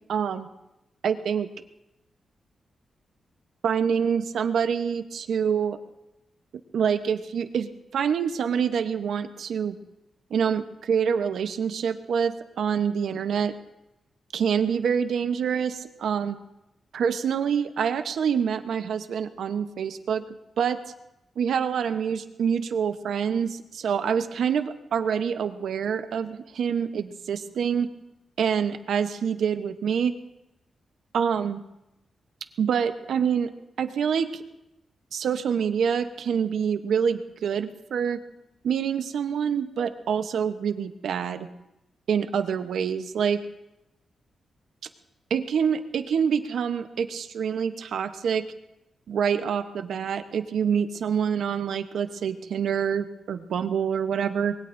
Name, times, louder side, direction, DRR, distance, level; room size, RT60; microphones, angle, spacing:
voice 1, 0.1-0.5 1.0-1.5 3.6-5.8 6.7-9.8 10.3-13.5 14.3-16.4 16.9-20.2 20.6-20.8 21.4-27.9 28.4-30.1 31.1-31.6 32.6-33.5 33.8-34.4 35.1-38.2 38.6-41.5 42.1-43.4 45.3-48.4 49.1-54.5, right 7 dB, 80° right, 9 dB, 0.8 m, -26 dB
25.5 x 21.5 x 2.6 m, 0.93 s
wide cardioid pair, 180°, 0 cm